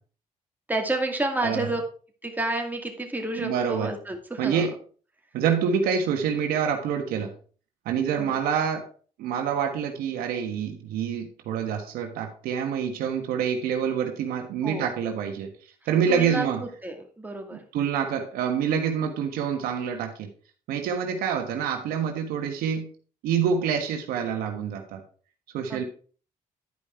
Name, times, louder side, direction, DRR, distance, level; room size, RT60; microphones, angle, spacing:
voice 1, 0.7-1.8 2.2-4.7 8.2-8.4 14.6-14.9 16.1-16.5 16.8-17.6 25.7-25.8, right 2 dB, 10° right, 3 dB, 2.2 m, -30 dB
voice 2, 3.3-3.9 4.4-4.8 5.3-7.3 7.8-8.8 9.2-15.5 15.9-16.6 17.5-20.3 20.7-22.9 23.2-25.0 25.5-25.8, right 7 dB, 90° right, 5 dB, 1.4 m, -26 dB
11.0 x 5.0 x 4.4 m, 0.41 s
cardioid pair, 75°, 15 cm